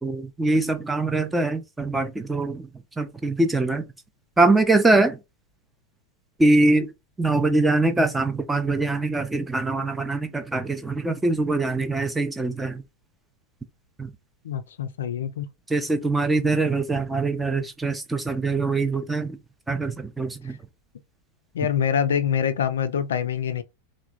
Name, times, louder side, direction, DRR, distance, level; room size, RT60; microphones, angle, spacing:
voice 1, 0.0-2.7 3.0-3.9 4.4-5.2 6.4-6.9 7.2-12.8 14.0-14.1 15.7-19.4 19.7-20.6, right 2 dB, 10° right, 0.4 m, -23 dB
voice 2, 14.4-15.5 20.4-20.6 21.5-23.6, left 8 dB, 65° left, 0.3 m, -25 dB
3.2 x 2.1 x 2.4 m
figure-of-eight pair, 90°, 0 cm